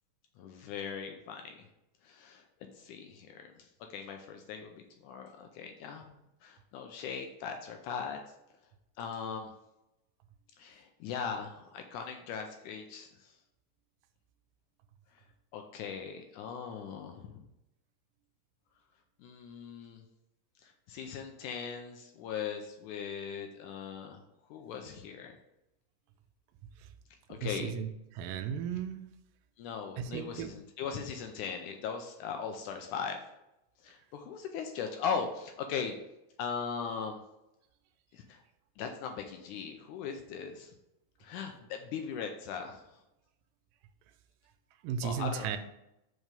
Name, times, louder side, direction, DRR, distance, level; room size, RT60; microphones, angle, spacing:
voice 1, 0.4-1.6 2.0-2.4 2.8-6.1 6.4-8.2 9.0-9.5 10.6-13.3 15.5-17.5 19.2-20.0 20.6-24.2 24.5-25.4 27.3-27.9 29.6-33.2 33.8-36.0 36.4-37.2 38.1-38.4 38.8-40.7 41.2-42.8 45.0-45.5, left 6 dB, 80° left, 4 dB, 1.9 m, -39 dB
voice 2, 27.4-27.9 28.2-29.0 30.0-30.5 44.8-45.6, right 7 dB, 85° right, 10 dB, 2.2 m, -35 dB
5.4 x 4.7 x 5.2 m, 0.87 s
omnidirectional pair, 3.9 m